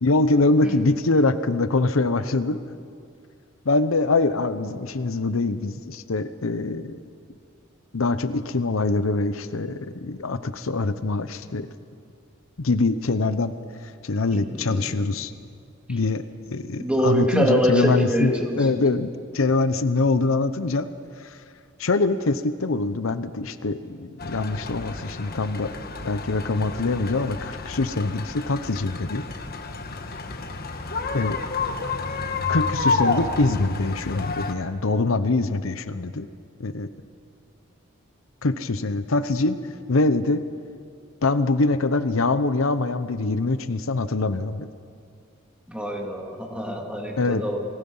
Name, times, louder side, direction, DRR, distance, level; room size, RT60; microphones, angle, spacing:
voice 1, 0.0-2.6 3.6-7.0 7.9-11.7 12.6-13.5 13.8-15.3 15.9-16.2 16.5-19.1 19.3-20.9 21.2-21.4 21.8-25.7 26.0-29.3 31.1-31.4 32.5-36.3 36.6-36.9 38.4-39.6 39.9-40.4 41.2-44.7 47.2-47.4, left 3 dB, 80° left, 12 dB, 0.8 m, -24 dB
voice 2, 14.2-15.0 15.9-16.0 16.8-19.0 45.7-47.6, equal, 5° right, 0 dB, 2.7 m, -25 dB
sound 1, 24.2-34.5, left 3 dB, 50° left, 1.4 m, -30 dB
29.5 x 19.5 x 5.6 m, 2.3 s
head